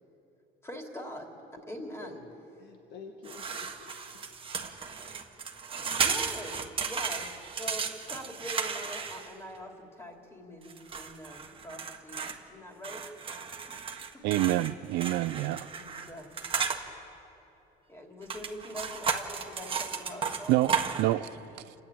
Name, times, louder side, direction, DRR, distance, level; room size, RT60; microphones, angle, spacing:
voice 1, 0.6-1.4 1.7-2.2 6.0-7.3 7.6-13.0 13.6-14.2 15.4-16.3 17.9-20.5 21.5-21.7, equal, 15° left, 1 dB, 3.0 m, -43 dB
voice 2, 1.8-2.1 2.6-4.2, left 4 dB, 90° left, 3 dB, 1.6 m, -49 dB
sound 1, 3.3-9.6 10.7-12.4 12.8-16.8 18.2-21.1, right 6 dB, 30° right, 1.5 m, -34 dB
voice 3, 14.2-15.7 20.5-20.7 21.0-21.3 21.6-21.7, right 16 dB, 90° right, 17 dB, 0.5 m, -27 dB
28.0 x 10.5 x 8.7 m, 3.0 s
cardioid pair, 110°, 17 cm